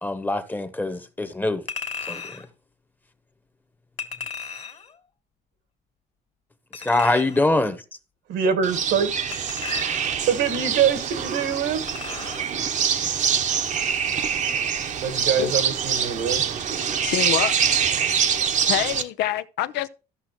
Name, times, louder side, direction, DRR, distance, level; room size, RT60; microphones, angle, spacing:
voice 1, 0.0-1.6 2.1-2.4 6.7-7.8, left 2 dB, 10° left, 1.0 m, -24 dB
Chink clink, 1.7-2.5 4.0-4.9 6.7-7.5 9.3-10.3 11.9-12.5 12.9-13.0, left 5 dB, 40° left, 1.6 m, -35 dB
voice 2, 8.3-9.1 10.3-11.9 15.0-16.4, right 7 dB, 80° right, 1.6 m, -24 dB
sound 1, 8.6-19.0, right 7 dB, 45° right, 0.9 m, -25 dB
voice 3, 17.0-17.6 18.7-19.9, left 13 dB, 85° left, 0.7 m, -26 dB
14.5 x 5.7 x 3.0 m
cardioid pair, 110°, 17 cm